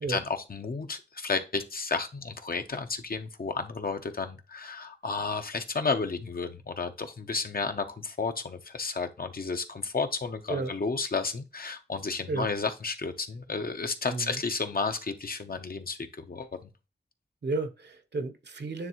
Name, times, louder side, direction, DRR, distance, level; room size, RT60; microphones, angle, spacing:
voice 1, 0.1-16.7, left 4 dB, 55° left, 7 dB, 0.9 m, -32 dB
voice 2, 17.4-18.9, right 3 dB, 65° right, 8 dB, 1.0 m, -32 dB
9.5 x 3.3 x 3.1 m, 0.29 s
wide cardioid pair, 65°, 19 cm